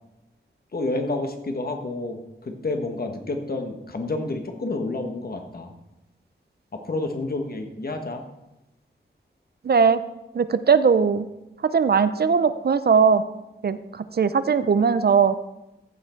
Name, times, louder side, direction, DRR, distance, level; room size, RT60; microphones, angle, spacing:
voice 1, 0.7-5.7 6.7-8.2, left 2 dB, 50° left, 4 dB, 1.4 m, -29 dB
voice 2, 9.6-10.0 10.3-11.3 11.6-13.2 13.6-15.3, right 6 dB, 55° right, 13 dB, 0.5 m, -19 dB
14.5 x 5.8 x 4.5 m, 0.94 s
wide cardioid pair, 100°, 20 cm